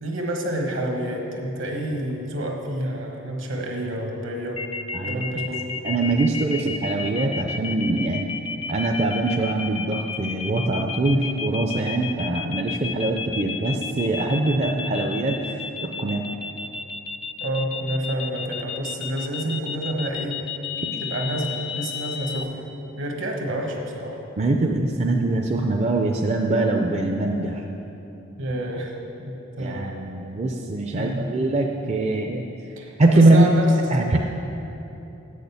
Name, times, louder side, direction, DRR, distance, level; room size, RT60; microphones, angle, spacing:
voice 1, 0.0-4.6 5.1-5.8 11.1-11.3 17.4-20.4 21.0-22.7 23.0-24.2 28.4-30.0 30.9-31.3 32.8-33.7 34.0-34.1, right 1 dB, 70° right, 1 dB, 1.3 m, -29 dB
sound 1, 4.6-22.4, left 6 dB, 25° left, 0.3 m, -32 dB
voice 2, 5.8-8.3 8.7-16.2 24.4-27.6 29.6-32.4 33.0-33.5 33.9-34.2, right 2 dB, 35° right, 2 dB, 0.4 m, -22 dB
8.2 x 6.5 x 6.8 m, 3.0 s
head